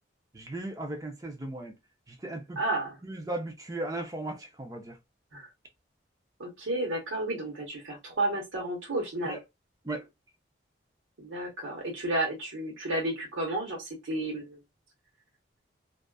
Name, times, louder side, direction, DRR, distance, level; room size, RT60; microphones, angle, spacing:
voice 1, 0.3-1.7 2.1-2.6 3.0-5.0 9.3-9.4 9.8-10.1, right 2 dB, 20° right, 0.5 m, -36 dB
voice 2, 2.6-3.0 5.3-5.5 6.4-9.4 11.2-14.6, right 1 dB, 85° right, 1.1 m, -32 dB
2.4 x 2.4 x 2.3 m
head